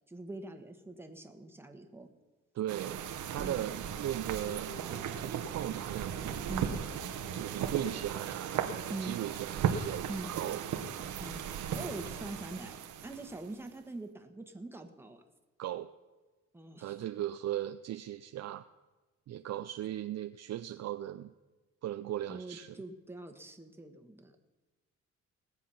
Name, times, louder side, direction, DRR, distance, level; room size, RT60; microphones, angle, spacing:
voice 1, 0.1-2.1 3.4-3.7 6.5-6.8 8.9-9.2 10.1-10.3 11.2-11.4 11.7-15.2 16.5-17.0 22.3-24.4, right 2 dB, 10° right, 5 dB, 1.5 m, -43 dB
voice 2, 2.5-3.0 3.3-6.6 7.3-10.6 15.6-15.9 16.8-18.7 19.3-21.3 21.8-22.8, right 12 dB, 60° right, 9 dB, 0.5 m, -38 dB
sound 1, 2.7-13.7, right 8 dB, 75° right, 1.1 m, -37 dB
sound 2, 3.3-10.2, left 4 dB, 55° left, 3.1 m, -54 dB
19.0 x 7.4 x 5.7 m, 1.2 s
cardioid pair, 90°, 30 cm